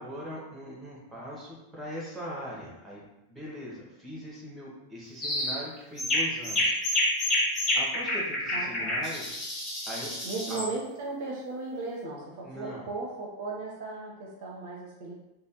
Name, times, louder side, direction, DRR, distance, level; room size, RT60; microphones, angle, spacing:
voice 1, 0.0-3.0 3.3-6.7 7.7-9.3 9.9-10.1 10.5-10.6 12.4-12.9, equal, 5° right, -4 dB, 1.0 m, -40 dB
sound 1, 5.2-5.6 6.0-10.7, left 1 dB, 25° left, 0.9 m, -28 dB
voice 2, 8.5-8.9 10.2-15.2, right 3 dB, 50° right, -2 dB, 0.5 m, -36 dB
3.2 x 2.2 x 2.8 m, 0.94 s
figure-of-eight pair, 90°, 0 cm